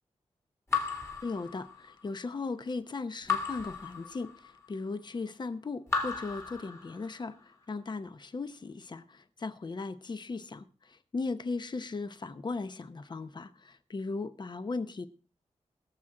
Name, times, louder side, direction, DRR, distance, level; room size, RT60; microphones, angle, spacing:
Raindrop / Drip, 0.7-2.1 3.3-4.7 5.9-7.3, left 5 dB, 20° left, 2.0 m, -35 dB
voice 1, 1.2-15.1, left 3 dB, 40° left, 0.8 m, -37 dB
21.5 x 7.4 x 3.8 m
wide cardioid pair, 135°, 12 cm